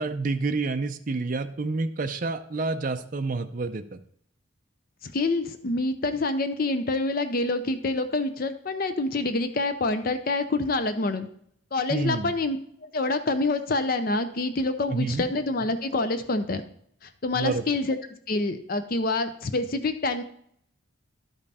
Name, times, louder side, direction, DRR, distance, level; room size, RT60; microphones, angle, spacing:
voice 1, 0.0-4.0 11.9-12.3 14.9-15.2 17.3-17.6, right 3 dB, 40° right, 7 dB, 0.5 m, -28 dB
voice 2, 5.0-11.3 11.7-16.6 17.2-18.0 18.3-20.2, left 2 dB, 45° left, 10 dB, 0.6 m, -27 dB
11.5 x 5.4 x 4.2 m, 0.66 s
head